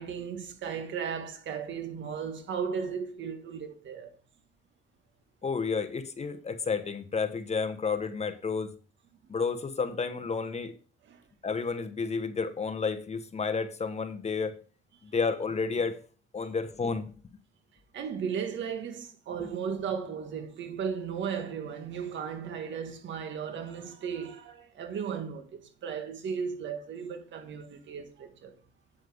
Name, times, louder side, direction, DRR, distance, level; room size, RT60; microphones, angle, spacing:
voice 1, 0.0-4.1 11.1-11.2 17.9-28.6, right 7 dB, 70° right, 1.6 m, -35 dB
voice 2, 5.4-8.7 9.3-10.7 11.4-14.5 15.0-16.0 16.3-17.1, left 5 dB, 35° left, 1.2 m, -31 dB
8.5 x 7.8 x 3.5 m
cardioid pair, 90°, 20 cm